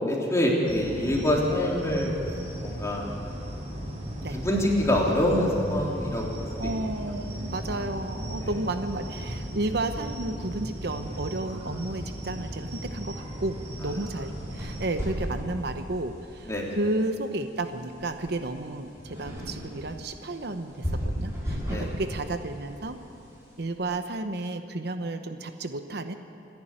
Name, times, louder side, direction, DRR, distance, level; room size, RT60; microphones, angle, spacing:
voice 1, 0.1-2.2 2.6-3.0 4.4-6.3 6.6-6.7 8.4-8.5 16.5-16.8 21.7-21.9, left 1 dB, 15° left, -3 dB, 3.3 m, -25 dB
sound 1, 0.7-14.8, right 1 dB, 40° right, 4.9 m, -36 dB
voice 2, 6.6-23.0 23.6-26.1, right 2 dB, 60° right, 8 dB, 0.9 m, -32 dB
sound 2, 14.3-23.6, equal, 15° right, 6.4 m, -36 dB
26.5 x 11.0 x 9.0 m, 2.7 s
head